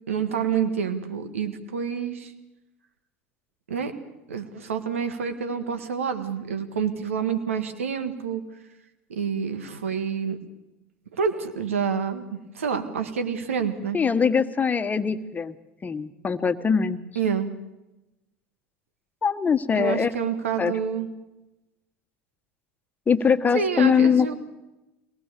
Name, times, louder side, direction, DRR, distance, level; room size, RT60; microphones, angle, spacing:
voice 1, 0.1-2.3 3.7-3.9 4.3-8.4 9.1-10.4 11.2-14.0 17.1-17.5 19.7-21.1 23.5-24.3, right 6 dB, 90° right, 9 dB, 1.7 m, -28 dB
voice 2, 13.9-15.5 15.8-17.0 19.2-20.1 20.6-20.7 23.1-24.3, left 6 dB, 25° left, 10 dB, 1.4 m, -22 dB
24.0 x 19.0 x 6.9 m, 0.99 s
hypercardioid pair, 80°, 7 cm